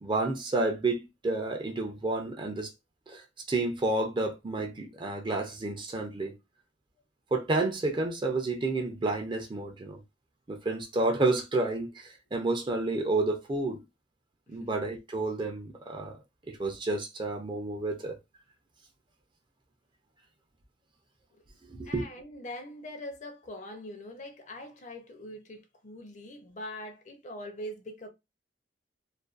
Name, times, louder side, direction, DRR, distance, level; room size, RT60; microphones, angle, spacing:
voice 1, 0.0-2.7 3.1-6.3 7.3-10.0 10.5-13.8 14.5-16.2 16.5-18.2 21.7-22.0, right 2 dB, 25° right, 0.4 m, -30 dB
voice 2, 21.8-28.1, left 1 dB, 40° left, 0.5 m, -42 dB
2.4 x 2.2 x 2.3 m
head